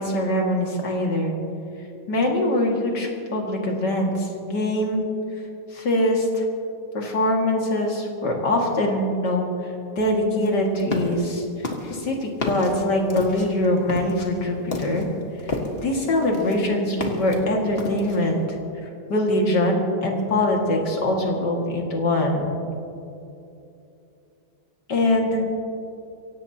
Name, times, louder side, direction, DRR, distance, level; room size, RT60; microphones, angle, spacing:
voice 1, 0.0-1.3 2.1-5.0 5.7-6.4 6.9-11.5 11.9-15.1 15.4-15.5 15.8-18.4 18.8-22.6 24.9-25.4, left 1 dB, 70° left, 0 dB, 2.8 m, -23 dB
sound 1, 10.4-11.2 11.6-15.9 16.2-17.4 17.8-18.3, left 2 dB, 35° left, 1.7 m, -31 dB
24.0 x 17.5 x 2.9 m, 2.7 s
omnidirectional pair, 1.9 m